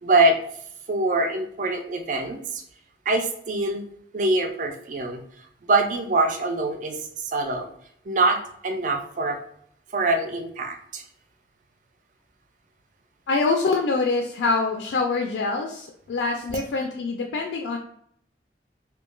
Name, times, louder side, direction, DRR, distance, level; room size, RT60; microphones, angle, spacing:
voice 1, 0.0-0.4 0.9-2.6 3.1-3.8 4.1-5.2 5.6-7.7 8.1-9.4 9.9-11.0, right 2 dB, 45° right, 4 dB, 0.3 m, -24 dB
voice 2, 13.3-17.8, left 3 dB, 90° left, 2 dB, 0.3 m, -25 dB
2.2 x 2.2 x 3.0 m, 0.67 s
head